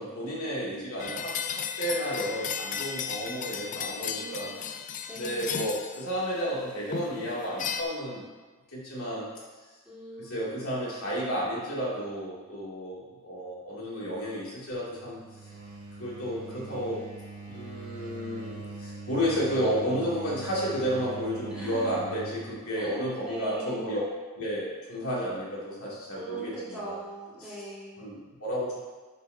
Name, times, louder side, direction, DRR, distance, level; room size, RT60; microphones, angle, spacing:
voice 1, 0.0-4.5 5.1-8.2 8.7-9.3 10.2-15.2 16.0-17.0 17.5-24.0 24.4-26.9 27.4-27.6 28.0-28.7, equal, 70° left, -6 dB, 2.7 m, -32 dB
sound 1, 1.0-6.4 6.9-7.8, left 7 dB, 35° left, 0.4 m, -35 dB
voice 2, 4.0-4.6 5.1-5.4 9.8-10.6 16.4-17.2 21.5-22.0 22.8-24.1 26.2-28.0, right 2 dB, 5° right, -9 dB, 2.1 m, -41 dB
sound 2, 14.7-22.4, right 3 dB, 80° right, 1.8 m, -42 dB
10.5 x 7.2 x 2.8 m, 1.3 s
head